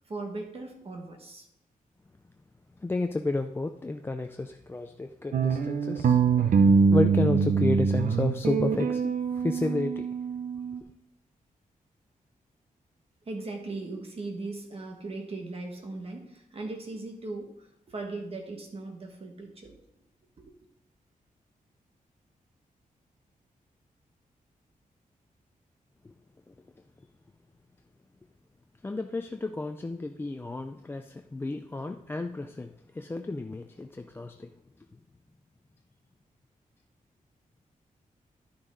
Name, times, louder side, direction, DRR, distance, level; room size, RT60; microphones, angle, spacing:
voice 1, 0.1-1.4 13.2-19.7 20.4-20.5, right 2 dB, 40° right, 1.6 m, -38 dB
voice 2, 2.8-10.1 26.0-26.1 26.5-26.6 28.8-34.5, left 2 dB, 15° left, 0.4 m, -32 dB
sound 1, 5.3-10.8, right 5 dB, 65° right, 0.7 m, -24 dB
11.0 x 6.2 x 3.9 m
wide cardioid pair, 130°, 15 cm